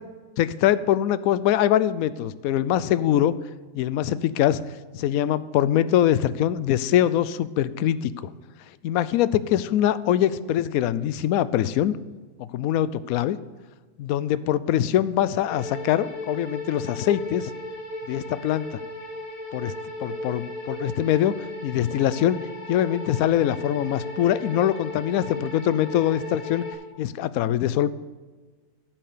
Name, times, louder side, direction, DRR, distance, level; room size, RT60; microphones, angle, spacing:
voice 1, 0.4-3.3 3.7-8.3 8.8-12.0 12.4-13.4 14.0-17.5 18.1-18.8 19.5-19.7 20.0-22.4 22.7-26.6 27.0-27.9, left 11 dB, 70° left, 16 dB, 0.9 m, -23 dB
sound 1, 15.5-26.7, left 1 dB, 55° left, 3.2 m, -36 dB
15.0 x 6.1 x 6.6 m, 1.4 s
omnidirectional pair, 1.7 m